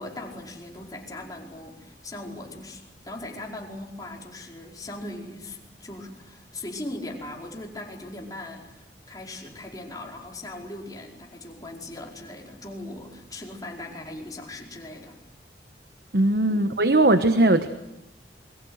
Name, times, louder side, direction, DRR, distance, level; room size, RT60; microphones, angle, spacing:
voice 1, 0.0-15.2 16.5-16.6, left 1 dB, 20° left, 0 dB, 4.8 m, -39 dB
voice 2, 16.1-17.7, right 2 dB, 60° right, 9 dB, 1.2 m, -19 dB
28.5 x 23.5 x 8.0 m, 0.88 s
head